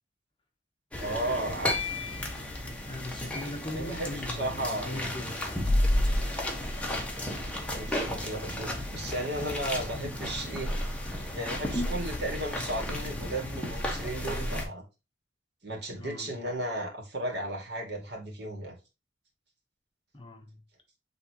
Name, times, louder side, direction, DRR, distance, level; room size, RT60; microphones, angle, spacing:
sound 1, 0.9-14.6, left 1 dB, 5° left, 1.4 m, -32 dB
voice 1, 1.0-1.8 3.7-5.3 7.4-10.7 11.3-14.8 15.6-18.8, right 1 dB, 65° right, 2.4 m, -35 dB
voice 2, 2.8-5.6 15.9-16.4 20.1-20.6, left 1 dB, 30° left, 1.1 m, -40 dB
8.7 x 3.6 x 3.0 m
head